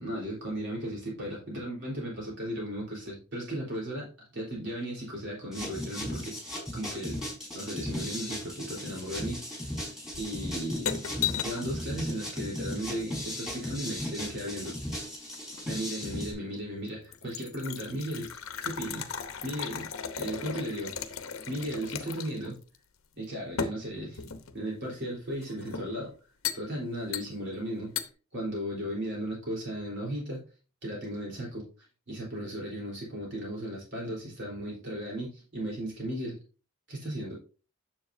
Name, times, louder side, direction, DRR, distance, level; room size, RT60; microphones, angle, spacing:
voice 1, 0.0-7.2 7.5-9.7 10.2-11.0 11.4-14.8 15.6-18.3 18.6-19.0 19.4-19.9 20.2-20.9 21.5-22.6 23.2-24.2 24.5-26.1 26.5-27.9 28.3-30.4 30.8-31.7 32.1-36.4 36.9-37.3, equal, 60° right, -3 dB, 3.8 m, -36 dB
sound 1, 5.5-16.3, left 1 dB, ahead, 4.5 m, -36 dB
sound 2, 10.1-11.7 13.2-14.6 15.3-16.0 16.5-16.6 16.9-22.5 22.7-22.8 23.6-24.6 25.4-26.0 26.4-26.7 27.1-27.6 28.0-28.1, left 7 dB, 75° left, 0.9 m, -36 dB
9.6 x 7.2 x 2.7 m, 0.35 s
head